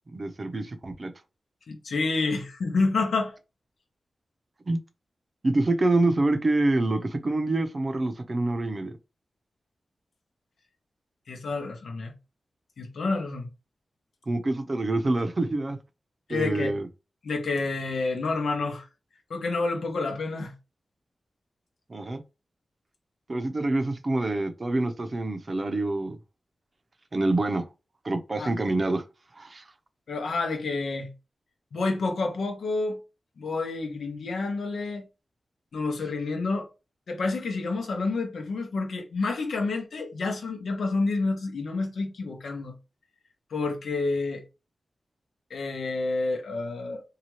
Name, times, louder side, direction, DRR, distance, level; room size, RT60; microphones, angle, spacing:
voice 1, 0.1-1.1 4.7-4.8 5.4-8.9 14.3-15.8 16.3-16.9 21.9-22.2 23.3-26.2 27.1-27.6 28.0-29.0 29.4-29.6, right 2 dB, 45° right, 0.6 m, -26 dB
voice 2, 1.7-3.4 11.3-12.1 12.8-13.5 16.3-16.7 17.2-18.9 19.3-20.5 28.4-28.5 30.1-31.1 31.7-33.0 33.4-35.1 35.7-36.7 37.1-42.8 43.5-44.4 45.5-47.0, left 3 dB, 85° left, 0.8 m, -29 dB
2.8 x 2.4 x 3.0 m
cardioid pair, 65°, 0 cm